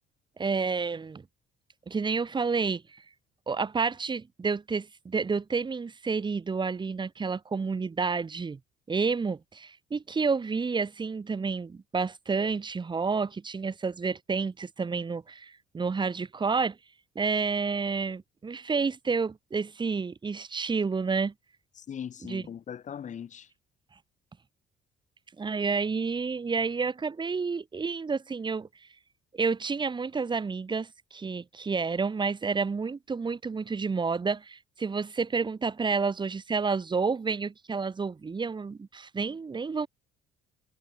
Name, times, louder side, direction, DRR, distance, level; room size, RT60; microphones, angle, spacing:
voice 1, 0.4-1.2 1.9-3.0 3.5-8.6 8.9-16.8 17.1-21.3 22.2-22.4 25.4-28.7 29.3-39.9, right 4 dB, 25° right, 6.5 m, -30 dB
voice 2, 21.8-23.5, left 8 dB, 45° left, 5.7 m, -40 dB
cardioid pair, 110°, 17 cm